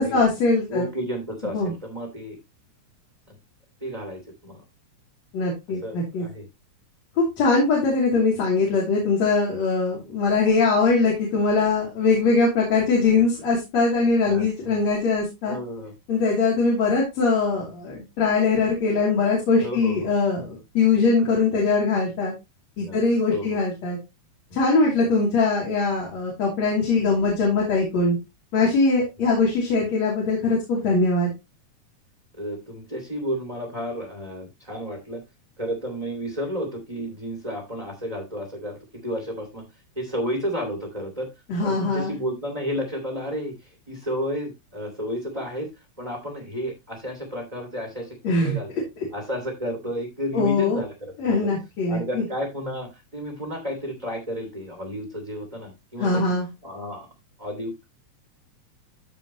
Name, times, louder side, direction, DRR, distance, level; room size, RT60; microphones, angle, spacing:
voice 1, 0.0-0.9 1.5-1.7 5.3-6.2 7.2-15.6 16.1-22.3 22.8-24.0 24.5-28.2 28.5-31.3 41.5-42.1 48.2-48.6 50.3-50.8 51.2-52.2 56.0-56.5, left 3 dB, 60° left, -3 dB, 4.0 m, -21 dB
voice 2, 0.7-2.4 3.3-3.4 3.8-4.6 5.8-6.5 14.2-14.7 15.4-15.9 19.6-20.1 22.8-23.0 23.3-23.6 32.4-35.2 35.6-39.6 40.0-41.3 41.6-43.6 43.9-45.7 46.0-48.7 49.1-51.5 51.9-56.3 56.6-57.1 57.4-57.9, equal, 15° right, 2 dB, 2.0 m, -32 dB
14.0 x 4.8 x 3.0 m, 0.23 s
omnidirectional pair, 3.6 m